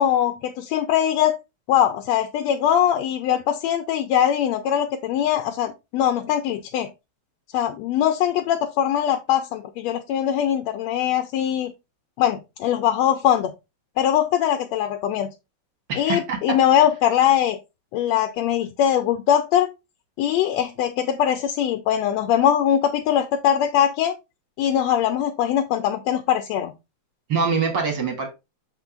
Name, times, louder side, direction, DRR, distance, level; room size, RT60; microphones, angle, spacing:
voice 1, 0.0-1.4 1.7-6.9 7.5-11.7 12.2-13.5 14.0-15.3 16.0-17.6 17.9-19.7 20.2-24.2 24.6-26.7, left 10 dB, 75° left, 1.7 m, -21 dB
voice 2, 15.9-16.4 27.3-28.3, right 5 dB, 40° right, 2.0 m, -24 dB
6.8 x 4.6 x 3.8 m
omnidirectional pair, 3.5 m